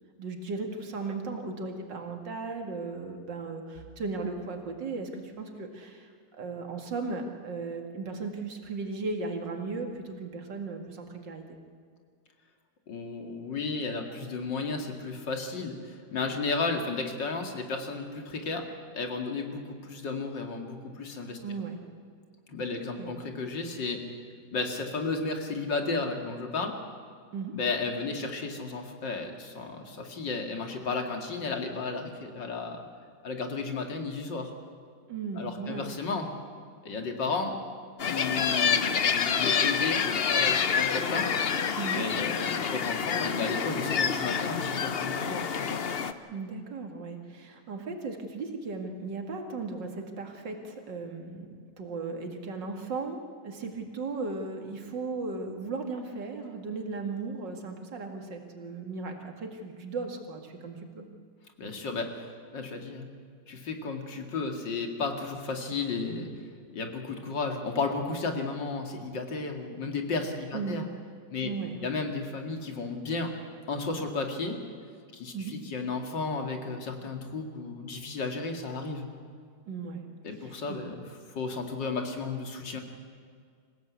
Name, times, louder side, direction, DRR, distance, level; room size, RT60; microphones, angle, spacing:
voice 1, 0.2-11.6 21.4-21.8 22.9-23.2 27.3-27.5 35.1-35.9 41.8-42.1 46.3-51.5 51.8-61.0 70.5-70.8 71.4-71.9 75.3-75.5 79.7-80.1 80.4-80.8, right 4 dB, 85° right, 4 dB, 2.8 m, -36 dB
voice 2, 12.9-18.7 18.9-21.4 22.5-24.0 24.5-26.8 27.5-32.8 33.2-34.5 35.4-36.3 36.8-37.5 38.1-41.3 41.9-45.7 61.6-62.2 62.5-63.1 63.5-66.3 66.7-70.8 71.3-71.5 71.8-73.3 73.7-74.6 75.1-79.1 80.2-81.0 81.3-82.8, left 4 dB, 90° left, 4 dB, 2.9 m, -33 dB
sound 1, 38.0-46.1, left 6 dB, 50° left, 0.8 m, -27 dB
26.5 x 16.5 x 8.3 m, 2.1 s
omnidirectional pair, 1.9 m